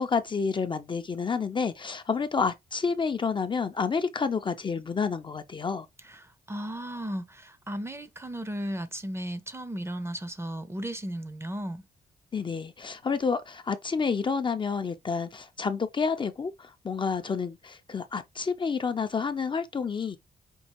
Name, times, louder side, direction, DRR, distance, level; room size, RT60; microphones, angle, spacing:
voice 1, 0.0-5.9 12.3-20.2, left 5 dB, 30° left, 0.5 m, -29 dB
voice 2, 6.0-11.8, right 1 dB, 15° right, 0.6 m, -35 dB
5.4 x 2.8 x 3.0 m
cardioid pair, 110°, 16 cm